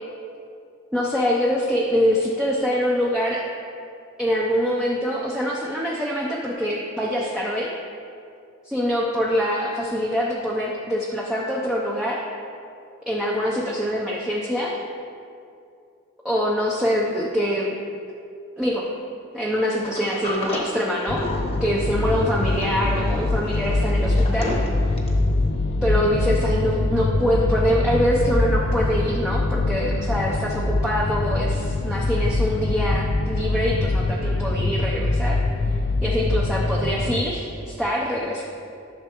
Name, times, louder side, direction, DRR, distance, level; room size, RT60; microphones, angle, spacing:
voice 1, 0.9-3.4 4.2-7.7 8.6-12.2 13.1-14.8 16.2-17.7 18.6-18.9 19.3-21.2 21.6-24.5 25.8-35.4 36.0-38.4, equal, 5° right, -4 dB, 0.6 m, -24 dB
Sliding door, 19.8-25.3, left 1 dB, 30° left, 1.0 m, -33 dB
sound 1, 21.1-37.2, left 2 dB, 55° left, 0.5 m, -23 dB
12.5 x 6.7 x 3.0 m, 2.5 s
head